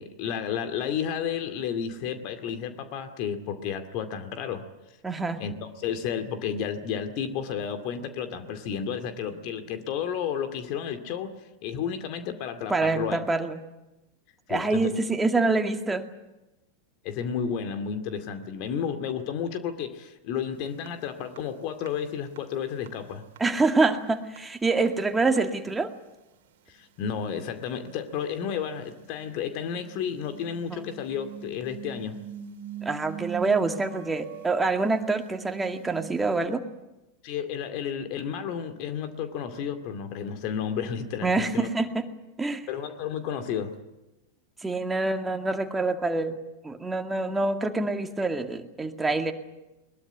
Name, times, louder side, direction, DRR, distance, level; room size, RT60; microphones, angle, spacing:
voice 1, 0.0-4.7 5.4-11.3 11.6-13.2 14.5-14.9 17.0-23.2 26.7-32.2 37.2-41.7 42.7-43.8, left 7 dB, 45° left, 8 dB, 2.3 m, -32 dB
voice 2, 5.0-5.4 12.7-13.6 14.5-16.1 23.4-25.9 30.7-30.9 32.8-36.6 41.2-42.1 42.4-42.7 44.6-46.4 46.6-49.3, right 3 dB, 10° right, 5 dB, 2.1 m, -26 dB
sound 1, 20.9-21.0 21.4-21.5 21.9-22.0 22.4-22.5 22.9-23.0 23.4-23.5 23.8-24.0 24.4-24.5 24.9-25.0 25.4-25.5 25.7-25.8 27.8-27.9 28.2-36.5, right 6 dB, 55° right, 2.3 m, -42 dB
21.5 x 21.5 x 9.3 m, 0.99 s
figure-of-eight pair, 90°, 0 cm